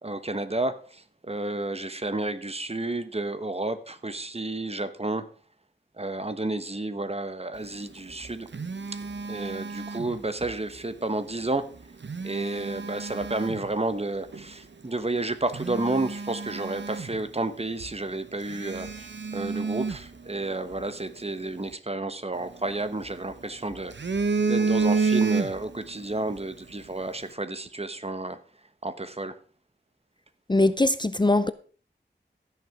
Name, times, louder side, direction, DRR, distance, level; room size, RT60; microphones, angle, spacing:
voice 1, 0.0-5.3 6.0-8.5 9.3-11.7 12.2-23.9 24.4-28.4 28.8-29.3, right 2 dB, 30° right, 1.1 m, -31 dB
Telephone, 8.0-10.6 11.8-13.7 14.3-14.5 15.0-15.1 15.5-17.5 17.8-17.9 18.4-20.8 22.4-23.3 23.7-25.9 26.2-26.4, right 4 dB, 75° right, 0.9 m, -30 dB
voice 2, 30.5-31.5, left 2 dB, 25° left, 0.5 m, -21 dB
15.5 x 6.7 x 4.9 m
wide cardioid pair, 60°, 19 cm